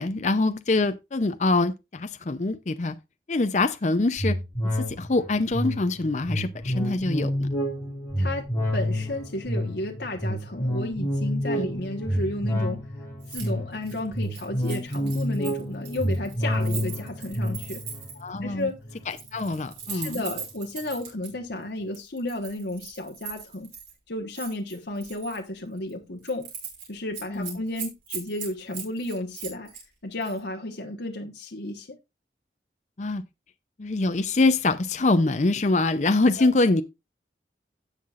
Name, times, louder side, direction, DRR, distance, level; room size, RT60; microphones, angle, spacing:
voice 1, 0.0-2.9 3.3-4.4 4.9-7.5 11.6-11.7 18.2-18.7 19.1-20.2 27.3-27.6 33.0-33.2 33.8-36.8, left 2 dB, 40° left, 0.5 m, -24 dB
sound 1, 4.2-19.9 20.3-20.4, equal, 15° left, 5.7 m, -29 dB
voice 2, 8.2-12.8 13.3-17.8 18.4-18.8 19.9-23.7 24.1-26.5 26.9-29.7 30.0-32.0 36.4-36.5, left 1 dB, 75° left, 1.2 m, -33 dB
Keys jangling, 13.2-13.5 13.8-18.3 19.0-21.3 21.9-23.9 24.3-25.4 25.8-25.9 26.2-26.9 27.1-29.8 30.2-30.4, right 6 dB, 90° right, 5.2 m, -39 dB
17.0 x 5.7 x 2.5 m
head